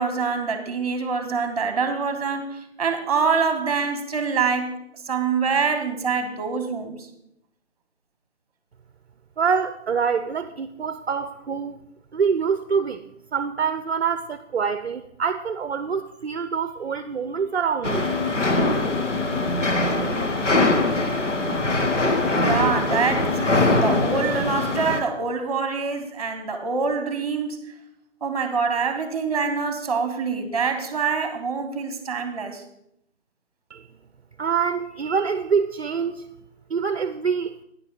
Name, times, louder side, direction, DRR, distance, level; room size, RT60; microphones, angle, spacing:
voice 1, 0.0-7.1 22.4-27.6 28.2-32.6, right 5 dB, 30° right, 1.1 m, -25 dB
voice 2, 9.4-11.8 12.1-13.0 13.3-18.1 33.7-33.8 34.4-36.2 36.7-37.5, right 6 dB, 55° right, 0.6 m, -25 dB
sound 1, 17.8-25.0, left 2 dB, 70° left, 1.5 m, -22 dB
9.7 x 8.4 x 4.8 m
figure-of-eight pair, 165°, 38 cm